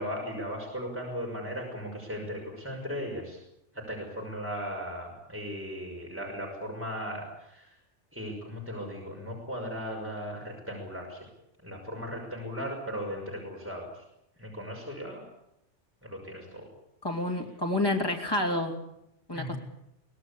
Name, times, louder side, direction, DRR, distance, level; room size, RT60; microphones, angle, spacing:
voice 1, 0.0-3.4 3.7-7.8 8.1-11.3 11.6-14.0 14.4-15.2 16.0-16.7 19.3-19.6, equal, 10° right, -1 dB, 5.9 m, -37 dB
voice 2, 17.0-18.7 19.3-19.6, left 1 dB, 20° left, 1 dB, 2.8 m, -29 dB
23.5 x 18.5 x 8.6 m, 0.82 s
omnidirectional pair, 1.2 m